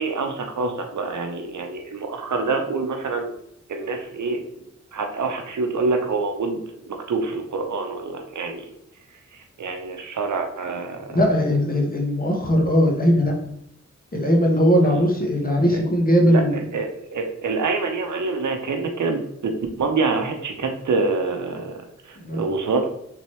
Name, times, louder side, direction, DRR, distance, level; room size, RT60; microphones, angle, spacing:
voice 1, 0.0-3.3 3.7-8.7 9.3-11.2 14.8-15.1 15.7-15.8 16.3-22.9, right 3 dB, 85° right, 4 dB, 0.7 m, -26 dB
voice 2, 11.1-13.3 14.1-16.6 22.2-22.4, equal, 30° left, 0 dB, 1.2 m, -19 dB
3.7 x 2.9 x 3.1 m, 0.76 s
cardioid pair, 40°, 29 cm